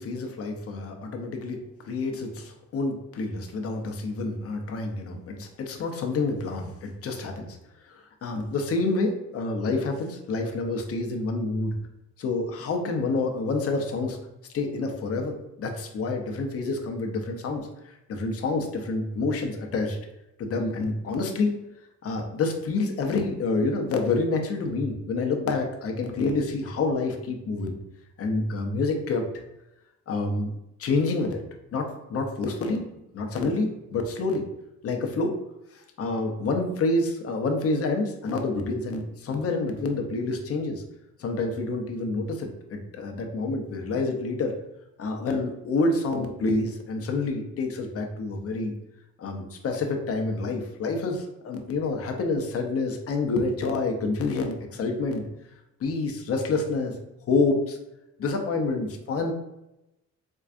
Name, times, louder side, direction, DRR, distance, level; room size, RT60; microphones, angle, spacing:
voice 1, 0.0-7.6 7.8-11.8 12.2-14.2 14.5-20.0 20.4-21.6 22.0-27.8 28.2-29.3 30.1-30.5 30.8-31.4 31.7-32.8 33.1-34.4 34.8-35.4 35.7-40.8 41.2-44.5 45.0-48.7 49.2-55.3 55.8-57.8 58.2-59.3, left 3 dB, 50° left, 3 dB, 0.7 m, -28 dB
4.5 x 2.3 x 2.5 m, 0.92 s
cardioid pair, 90°, 30 cm